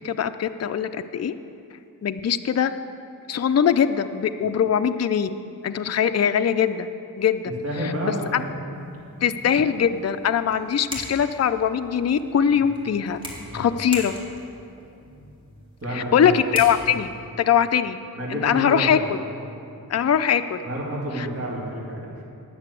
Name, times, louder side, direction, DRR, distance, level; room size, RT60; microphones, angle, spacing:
voice 1, 0.0-1.3 2.0-2.7 3.3-5.3 5.6-6.9 7.2-7.5 8.0-8.4 9.2-13.2 13.5-14.2 15.9-17.1 17.4-18.0 18.3-19.2 19.9-20.6 21.2-21.3, left 8 dB, 45° left, 10 dB, 0.4 m, -22 dB
voice 2, 7.6-8.6 13.5-13.8 15.1-15.2 15.8-16.7 18.2-19.2 20.6-22.2, equal, 40° right, -5 dB, 2.6 m, -30 dB
sound 1, 8.7-17.2, equal, 15° right, 2.2 m, -41 dB
10.5 x 6.7 x 8.1 m, 2.6 s
wide cardioid pair, 90°, 38 cm